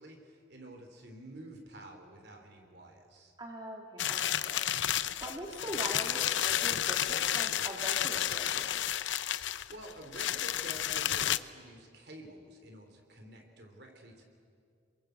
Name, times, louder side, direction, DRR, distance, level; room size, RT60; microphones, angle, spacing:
voice 1, 0.0-3.3 9.7-14.2, right 1 dB, 60° right, 3 dB, 3.6 m, -49 dB
voice 2, 3.4-4.6 5.2-8.8, right 1 dB, 25° right, 0 dB, 3.0 m, -42 dB
sound 1, 4.0-11.4, left 11 dB, 85° left, 0.7 m, -31 dB
28.5 x 22.5 x 8.1 m, 2.3 s
head